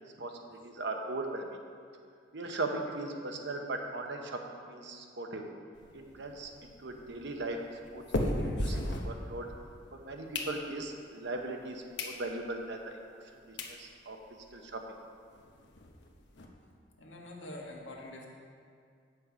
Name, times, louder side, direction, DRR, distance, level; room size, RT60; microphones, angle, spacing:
voice 1, 0.0-1.6 2.3-4.4 4.7-5.4 5.9-7.6 7.9-9.5 9.9-13.0 13.3-14.2 14.5-14.8, right 2 dB, 65° right, 3 dB, 1.0 m, -39 dB
sound 1, 5.8-9.7 10.1-11.0 11.5-11.6 11.9-12.2 12.6-12.7 13.3-13.4 13.6-13.8 14.2-14.3 14.5-14.6 14.9-15.0 15.3-16.5, left 1 dB, 65° left, 1.0 m, -36 dB
voice 2, 17.0-18.3, left 1 dB, 85° left, -1 dB, 1.6 m, -45 dB
8.3 x 7.7 x 5.0 m, 2.2 s
head